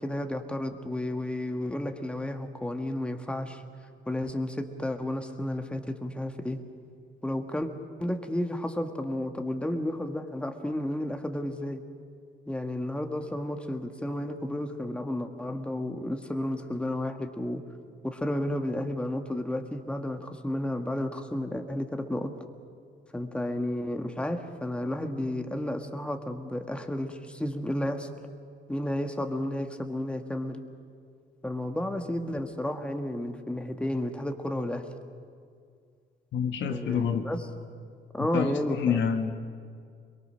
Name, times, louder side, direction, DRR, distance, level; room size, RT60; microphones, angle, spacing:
voice 1, 0.0-3.6 4.1-6.6 7.2-7.7 8.0-11.8 12.5-17.6 18.0-22.3 23.1-28.1 28.7-30.6 31.4-34.8 36.7-37.4 38.1-39.0, left 1 dB, 5° left, 6 dB, 1.5 m, -32 dB
voice 2, 36.3-37.2 38.3-39.3, left 7 dB, 70° left, 6 dB, 1.4 m, -27 dB
22.5 x 22.0 x 6.4 m, 2.2 s
cardioid pair, 90°, 20 cm